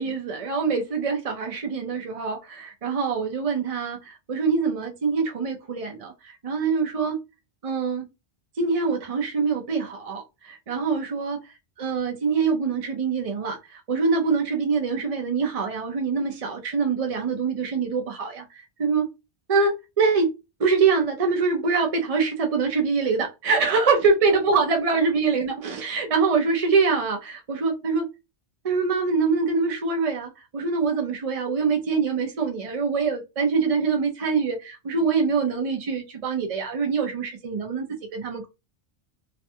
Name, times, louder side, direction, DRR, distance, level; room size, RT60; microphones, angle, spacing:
voice 1, 0.0-7.2 7.6-8.1 8.6-11.4 11.8-19.1 19.5-20.3 20.6-28.1 28.6-37.9 38.1-38.5, right 4 dB, 45° right, 0.4 m, -24 dB
2.5 x 2.2 x 2.7 m
omnidirectional pair, 1.2 m